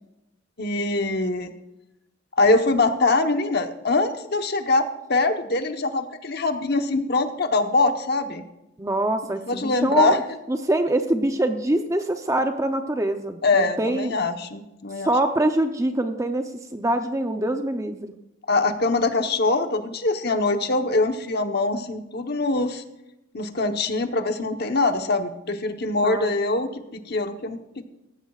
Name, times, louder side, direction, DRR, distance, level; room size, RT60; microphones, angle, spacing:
voice 1, 0.6-1.5 2.4-8.5 9.5-10.2 13.4-15.1 18.5-22.8 23.3-27.9, left 3 dB, 55° left, 6 dB, 1.1 m, -23 dB
voice 2, 8.8-10.2 10.5-14.1 15.0-18.1 26.0-26.4, right 1 dB, 15° right, 6 dB, 0.7 m, -24 dB
17.5 x 15.0 x 2.4 m, 0.92 s
head